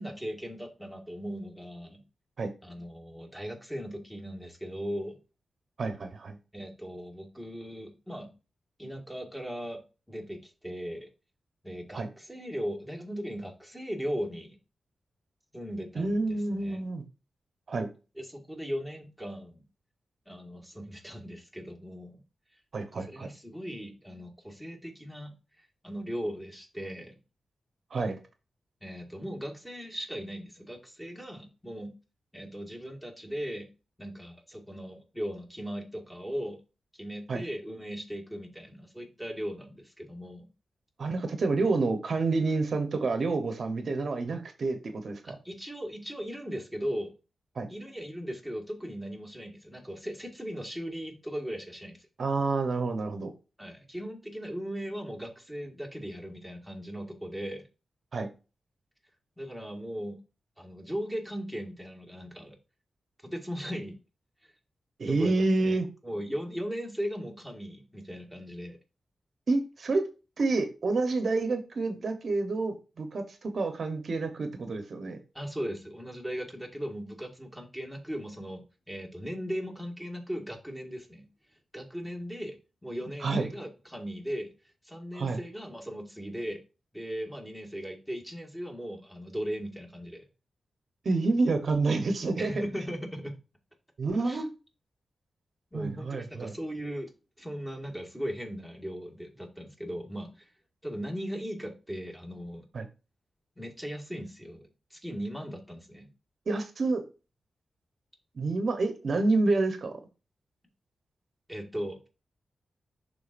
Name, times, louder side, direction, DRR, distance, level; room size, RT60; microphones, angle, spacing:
voice 1, 0.0-2.0 2.6-5.2 6.5-8.3 8.8-9.8 10.1-11.1 11.6-14.6 15.5-16.8 18.2-19.6 20.3-22.2 22.9-27.2 28.8-31.9 32.3-33.7 34.0-36.6 36.9-40.5 45.2-47.1 47.7-52.1 53.6-57.6 59.4-60.2 60.6-62.6 63.2-64.0 65.1-68.8 75.3-81.3 81.7-82.5 82.8-84.5 84.8-86.6 86.9-90.2 92.4-93.4 94.2-94.4 95.7-97.1 97.4-100.5 100.8-102.6 103.6-106.1 111.5-112.1, equal, 5° left, 0 dB, 1.7 m, -38 dB
voice 2, 5.8-6.4 11.9-12.1 16.0-17.0 17.7-17.9 22.7-23.3 27.9-28.2 37.3-37.4 41.0-45.4 47.5-47.7 52.2-53.3 58.1-58.3 65.0-65.9 69.5-70.1 70.4-75.2 83.2-83.5 85.1-85.4 91.0-92.5 94.0-94.5 95.7-96.5 102.7-102.9 106.5-107.1 108.3-110.0, right 3 dB, 60° right, 7 dB, 0.9 m, -28 dB
11.0 x 3.8 x 2.5 m, 0.31 s
wide cardioid pair, 100°, 0 cm